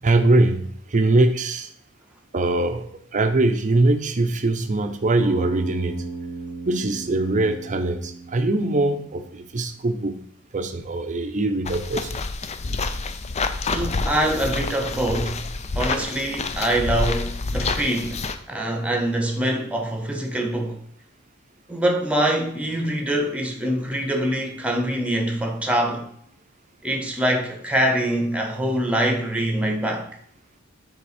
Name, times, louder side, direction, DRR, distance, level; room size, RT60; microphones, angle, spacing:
voice 1, 0.0-1.7 2.3-6.0 6.7-10.2 10.5-12.3, right 2 dB, 35° right, 0.6 m, -22 dB
Bass guitar, 5.2-9.5, right 3 dB, 75° left, 2.3 m, -36 dB
sound 1, 11.7-18.4, left 3 dB, 30° left, 0.5 m, -28 dB
voice 2, 13.7-15.4 15.7-20.8 21.7-26.1 26.8-30.1, right 1 dB, 5° right, 1.0 m, -24 dB
6.9 x 3.6 x 5.0 m
head